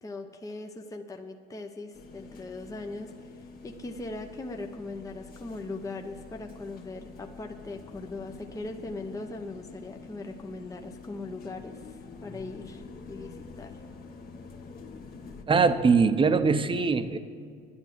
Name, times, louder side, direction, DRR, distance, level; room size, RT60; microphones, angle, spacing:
voice 1, 0.0-13.8, left 2 dB, 15° left, 4 dB, 0.8 m, -40 dB
sound 1, 1.9-15.4, left 4 dB, 45° left, 1.4 m, -46 dB
voice 2, 15.5-17.2, right 5 dB, 25° right, 10 dB, 0.8 m, -22 dB
10.5 x 9.9 x 7.5 m, 2.1 s
supercardioid pair, 100°, 21 cm